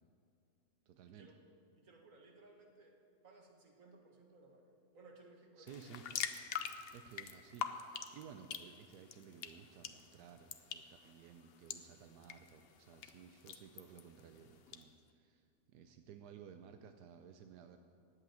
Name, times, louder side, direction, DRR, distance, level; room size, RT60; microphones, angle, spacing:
voice 1, 0.9-1.3 5.6-6.0 6.9-17.8, right 8 dB, 85° right, 7 dB, 1.2 m, -56 dB
voice 2, 1.8-2.9 3.2-4.6 4.9-5.8, right 2 dB, 55° right, 1 dB, 1.9 m, -60 dB
sound 1, 5.7-14.8, left 7 dB, 60° left, 0.6 m, -46 dB
11.0 x 7.9 x 9.1 m, 2.4 s
omnidirectional pair, 1.7 m